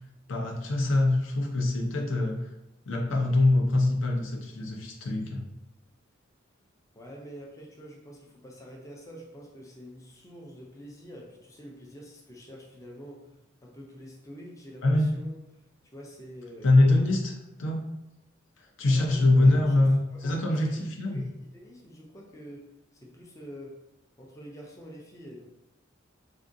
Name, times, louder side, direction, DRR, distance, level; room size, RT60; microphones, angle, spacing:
voice 1, 0.3-2.4 2.9-5.4 14.8-15.2 16.6-17.3 17.6-17.9 18.8-21.2, left 2 dB, 70° left, 1 dB, 0.6 m, -24 dB
voice 2, 6.9-13.3 13.6-15.4 15.9-16.7 18.9-20.7 21.0-22.7 22.9-23.8 24.2-25.4, equal, 15° left, -1 dB, 0.4 m, -46 dB
3.6 x 2.4 x 2.6 m, 0.90 s
head